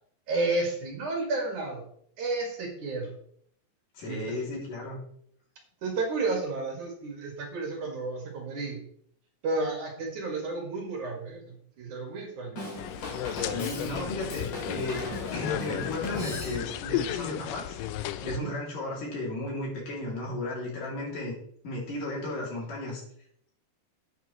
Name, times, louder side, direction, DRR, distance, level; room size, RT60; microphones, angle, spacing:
voice 1, 0.3-1.8 2.2-3.1 4.1-4.4 5.8-8.8 9.4-12.6 18.2-18.5, right 3 dB, 55° right, 0 dB, 3.3 m, -32 dB
voice 2, 3.9-5.0 13.4-17.8 18.2-21.3 21.6-23.0, left 2 dB, 60° left, -3 dB, 4.4 m, -34 dB
Drum kit / Drum, 12.6-16.9, left 1 dB, 45° left, 3.2 m, -38 dB
sound 1, 12.8-18.4, left 12 dB, 85° left, 1.9 m, -34 dB
11.0 x 9.0 x 3.2 m, 0.64 s
omnidirectional pair, 4.3 m